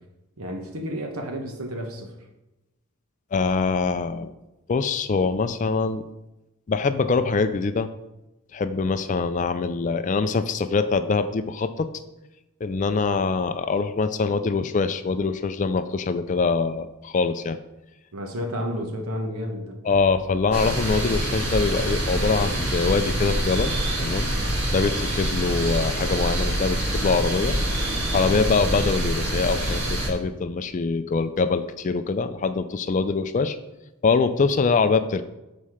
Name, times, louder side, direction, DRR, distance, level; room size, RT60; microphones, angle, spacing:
voice 1, 0.4-2.1 18.1-19.8, equal, 75° right, 3 dB, 1.2 m, -31 dB
voice 2, 3.3-4.3 4.7-6.0 6.7-7.9 8.5-11.9 12.6-17.6 19.8-24.3 24.7-27.6 28.1-33.6 34.0-35.2, left 4 dB, 35° left, 11 dB, 0.3 m, -24 dB
sound 1, 20.5-30.1, right 1 dB, 55° right, 1.8 m, -26 dB
7.5 x 4.2 x 4.8 m, 0.97 s
head